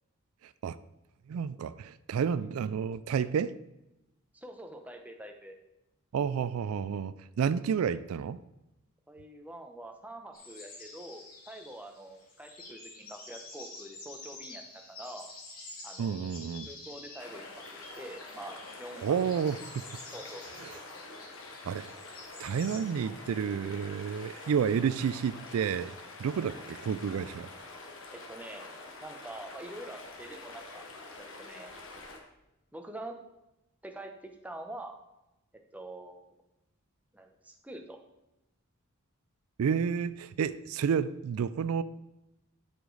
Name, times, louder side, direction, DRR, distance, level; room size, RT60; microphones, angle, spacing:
voice 1, 1.3-3.5 6.1-8.4 16.0-16.7 19.0-20.0 20.6-20.8 21.6-21.9 22.4-27.5 39.6-41.8, right 7 dB, 75° right, 0.3 m, -30 dB
voice 2, 4.3-5.6 9.1-15.3 15.8-16.3 16.6-17.4 17.8-19.2 20.1-20.7 26.3-26.6 28.1-28.7 29.0-30.8 31.2-31.7 32.7-33.2 33.8-35.0 35.7-36.3 37.1-38.0, right 1 dB, 5° right, 0.7 m, -45 dB
sound 1, 10.3-22.8, left 2 dB, 40° left, 2.2 m, -49 dB
sound 2, 17.2-32.2, left 3 dB, 60° left, 1.3 m, -46 dB
13.0 x 5.1 x 3.9 m
head